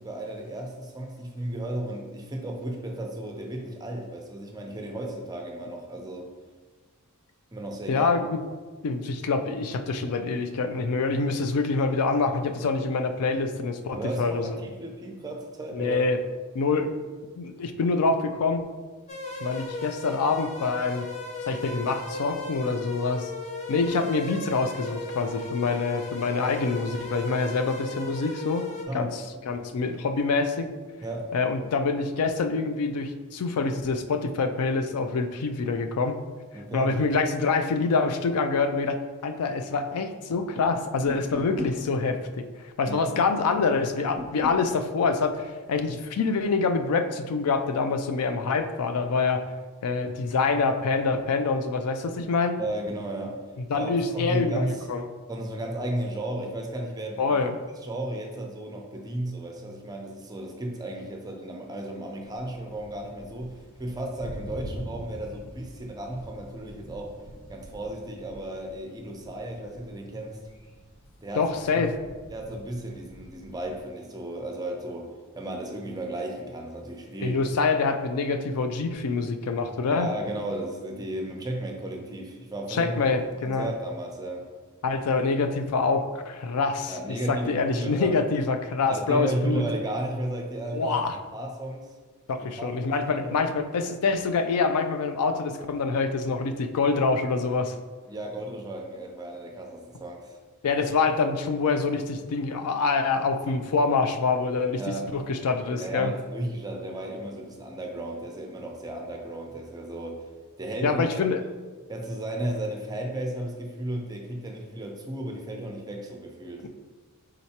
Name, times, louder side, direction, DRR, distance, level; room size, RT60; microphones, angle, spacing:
voice 1, 0.0-6.3 7.5-8.1 13.9-16.0 28.9-29.4 31.0-31.3 36.5-36.9 42.8-43.1 52.6-53.4 53.7-54.8 55.3-57.4 57.8-67.2 67.5-70.4 71.2-71.9 72.3-77.4 79.9-84.5 86.9-88.1 88.9-91.0 91.3-91.9 92.6-92.7 93.2-93.3 98.1-100.4 104.8-105.1 105.8-110.2 110.6-111.0 111.9-116.7, right 1 dB, 15° right, 2 dB, 0.5 m, -34 dB
voice 2, 7.9-8.4 8.8-14.5 15.7-16.2 16.5-16.9 17.4-18.7 19.4-21.1 21.5-23.3 23.7-28.7 28.9-29.1 29.5-30.7 31.3-36.2 36.7-49.4 49.8-52.6 53.7-55.0 57.2-57.6 71.4-71.9 77.2-80.1 82.7-83.7 84.8-89.6 90.7-91.2 92.3-97.8 100.6-104.8 105.1-106.1 110.8-111.4, left 4 dB, 85° left, 8 dB, 0.4 m, -26 dB
sound 1, 19.1-28.9, left 2 dB, 30° left, 0.5 m, -36 dB
sound 2, 41.1-41.8 44.2-44.7, equal, 50° left, 0.9 m, -36 dB
Thunder, 62.2-73.8, right 1 dB, 65° left, 1.2 m, -45 dB
4.4 x 3.8 x 2.8 m, 1.4 s
head